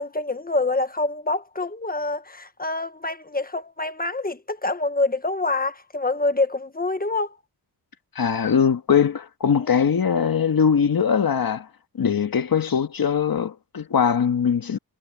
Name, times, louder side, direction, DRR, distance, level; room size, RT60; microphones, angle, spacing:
voice 1, 0.0-7.4 9.6-9.7, left 2 dB, 20° left, 1.3 m, -26 dB
voice 2, 8.1-11.7 12.0-14.8, left 7 dB, 55° left, 1.8 m, -21 dB
wide cardioid pair, 135°, 41 cm